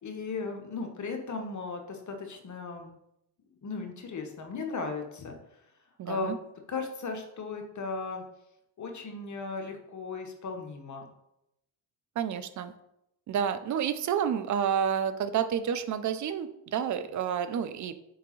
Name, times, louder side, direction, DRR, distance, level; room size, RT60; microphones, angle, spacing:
voice 1, 0.0-2.9 3.6-5.4 6.1-6.3 6.7-8.2 8.8-11.1, left 4 dB, 35° left, 4 dB, 0.9 m, -36 dB
voice 2, 6.0-6.4 12.2-12.7 13.3-17.9, right 8 dB, 40° right, 12 dB, 0.4 m, -29 dB
4.6 x 3.6 x 3.0 m, 0.81 s
hypercardioid pair, 60°, 49 cm